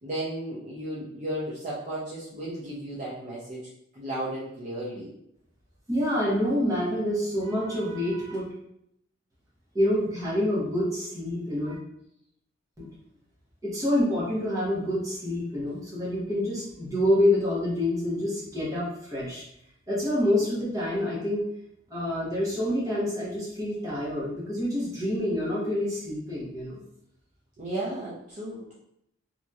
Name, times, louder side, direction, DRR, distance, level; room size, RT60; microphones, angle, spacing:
voice 1, 0.0-3.7 3.9-5.1 27.6-28.7, right 1 dB, 40° right, -7 dB, 0.5 m, -34 dB
voice 2, 5.9-8.5 9.7-11.7 12.8-12.9 13.6-19.4 19.9-21.5 21.9-26.8, left 1 dB, 20° right, -7 dB, 1.0 m, -27 dB
2.9 x 2.7 x 2.3 m, 0.76 s
head